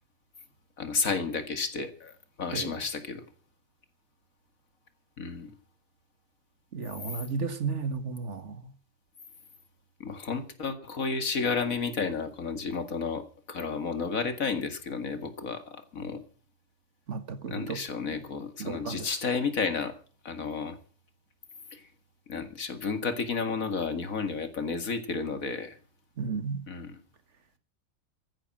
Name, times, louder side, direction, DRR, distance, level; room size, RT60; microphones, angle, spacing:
voice 1, 0.8-3.2 5.2-5.5 10.0-16.2 17.5-20.0 20.2-20.8 21.7-21.8 22.3-25.8 26.7-27.0, left 5 dB, 85° left, 2.5 m, -32 dB
voice 2, 6.7-8.7 17.1-17.8 18.6-19.1 26.2-26.6, right 5 dB, 60° right, 1.7 m, -33 dB
15.0 x 10.5 x 7.5 m
omnidirectional pair, 1.4 m